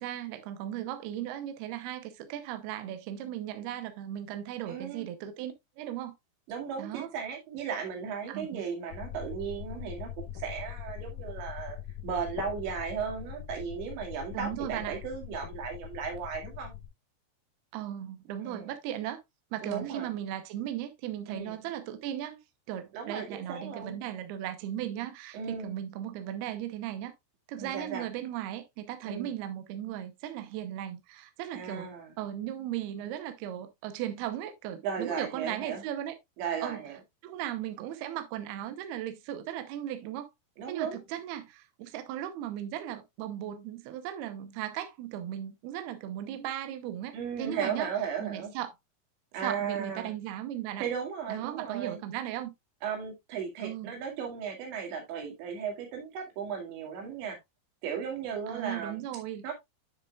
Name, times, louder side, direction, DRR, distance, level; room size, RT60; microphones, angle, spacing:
voice 1, 0.0-6.1 6.8-7.1 8.3-8.6 14.3-15.0 17.7-19.2 19.5-22.4 22.7-27.1 27.5-36.2 36.6-36.8 37.2-40.3 40.7-47.9 48.2-48.7 49.4-50.9 51.3-52.5 53.6-54.0 58.5-59.4, right 11 dB, 75° right, 2.7 m, -37 dB
voice 2, 4.7-5.1 6.5-11.8 12.0-16.7 18.4-18.7 19.6-20.1 21.3-21.6 22.9-24.0 25.3-25.7 27.6-28.0 29.0-29.3 31.5-32.1 34.8-35.8 36.4-37.0 40.6-41.0 47.1-48.5 49.3-50.1 50.8-52.0 52.8-57.4 57.8-59.0 59.4-59.5, right 7 dB, 90° right, 4.5 m, -36 dB
sound 1, 8.9-16.9, left 11 dB, 70° left, 2.3 m, -42 dB
9.9 x 6.7 x 2.4 m
omnidirectional pair, 5.0 m